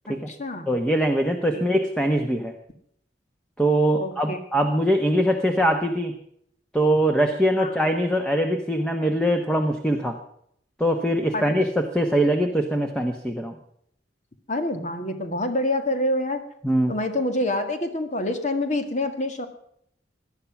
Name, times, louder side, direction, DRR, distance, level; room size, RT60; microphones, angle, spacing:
voice 1, 0.1-0.7 1.5-1.6 4.0-4.4 7.6-7.8 11.3-11.4 14.5-16.4 16.9-19.5, left 1 dB, 40° left, 7 dB, 2.0 m, -26 dB
voice 2, 0.7-2.5 3.6-6.1 6.7-10.2 10.8-13.5 16.6-16.9, right 1 dB, 5° left, 4 dB, 1.2 m, -22 dB
18.5 x 11.5 x 6.0 m, 0.69 s
head